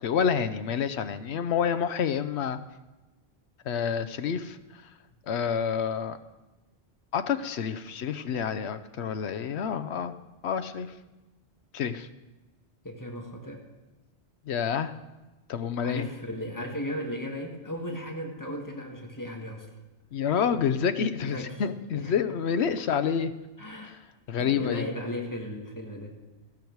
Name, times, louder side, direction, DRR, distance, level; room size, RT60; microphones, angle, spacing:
voice 1, 0.0-2.6 3.6-4.9 5.3-6.2 7.1-10.2 10.4-10.9 11.7-12.1 14.5-14.9 15.5-16.1 20.1-23.3 23.8-23.9 24.3-24.8, left 7 dB, 90° left, 12 dB, 1.0 m, -28 dB
voice 2, 12.8-13.6 15.8-19.7 21.2-21.6 21.9-22.1 23.6-24.0 24.4-26.2, left 1 dB, 20° left, 1 dB, 1.7 m, -36 dB
13.5 x 12.0 x 4.6 m, 1.1 s
omnidirectional pair, 1.1 m